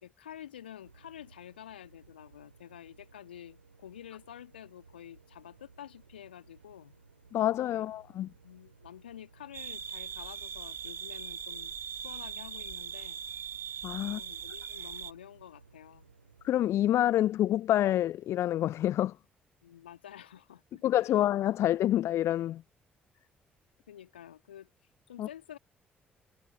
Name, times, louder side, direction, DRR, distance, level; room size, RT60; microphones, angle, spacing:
voice 1, 0.0-7.0 7.7-7.9 8.4-13.2 14.0-16.1 19.6-21.1 23.9-24.7 25.1-25.6, left 10 dB, 80° left, 2.2 m, -49 dB
sound 1, 0.8-17.1, right 5 dB, 85° right, 6.0 m, -60 dB
voice 2, 7.3-8.3 13.8-14.2 16.4-19.1 20.8-22.6 25.2-25.3, left 13 dB, 55° left, 0.5 m, -27 dB
sound 2, 9.5-15.1, right 7 dB, 45° right, 1.0 m, -40 dB
figure-of-eight pair, 40°, 5 cm